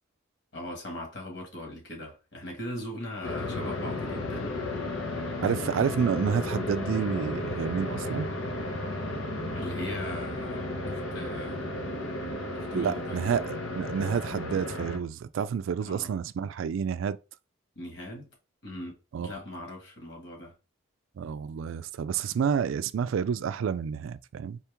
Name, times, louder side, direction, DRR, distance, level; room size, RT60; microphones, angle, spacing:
voice 1, 0.5-4.6 9.5-11.8 12.5-13.2 15.8-16.1 17.8-18.3 18.6-18.9 19.2-20.5, left 1 dB, 60° left, 1.7 m, -40 dB
sound 1, 3.2-15.0, left 2 dB, 80° left, 0.9 m, -33 dB
voice 2, 5.4-8.3 12.7-17.2 19.1-19.4 21.2-24.6, right 7 dB, 80° right, 0.3 m, -29 dB
4.4 x 2.9 x 3.4 m
head